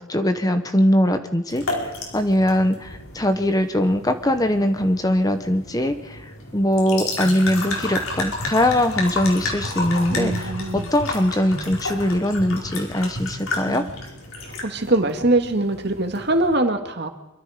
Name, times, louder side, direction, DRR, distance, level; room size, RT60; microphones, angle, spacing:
voice 1, 0.0-1.6 2.1-6.2 6.5-13.8, left 1 dB, 20° left, 8 dB, 1.1 m, -21 dB
sound 1, 1.5-16.5, left 2 dB, 90° left, 5.0 m, -32 dB
voice 2, 10.1-10.9 13.7-13.9 14.4-17.1, right 2 dB, 55° right, 5 dB, 2.2 m, -23 dB
25.0 x 24.0 x 5.1 m, 0.97 s
head